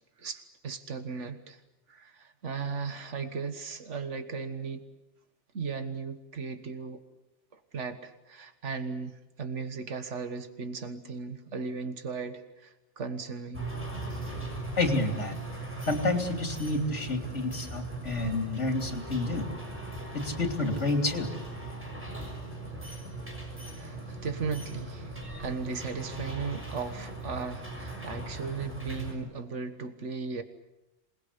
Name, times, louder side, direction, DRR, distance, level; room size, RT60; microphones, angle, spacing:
voice 1, 0.2-1.6 1.9-4.9 5.5-7.0 7.5-13.7 23.7-30.4, right 5 dB, 90° right, 9 dB, 1.8 m, -37 dB
sound 1, 13.5-29.1, right 2 dB, 10° right, 6.1 m, -39 dB
voice 2, 14.8-15.3 15.9-19.5 20.1-21.3, left 2 dB, 85° left, 5 dB, 3.3 m, -29 dB
27.5 x 20.5 x 8.3 m, 0.97 s
omnidirectional pair, 1.2 m